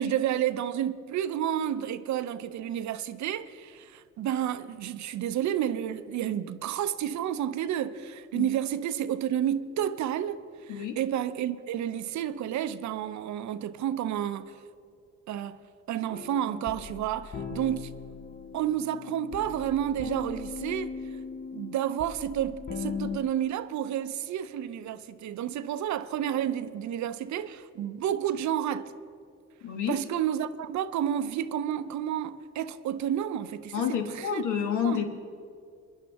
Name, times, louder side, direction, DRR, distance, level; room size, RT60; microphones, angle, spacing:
voice 1, 0.0-14.6 15.3-15.6 15.9-18.0 18.5-21.0 21.5-28.9 29.9-33.7 34.2-34.4 34.8-35.0, right 10 dB, 70° right, 0.6 m, -30 dB
sound 1, 16.1-23.2, left 5 dB, 30° left, 0.8 m, -39 dB
voice 2, 29.6-30.0 33.7-35.2, left 8 dB, 80° left, 1.6 m, -29 dB
23.0 x 11.0 x 3.5 m
cardioid pair, 90°, 30 cm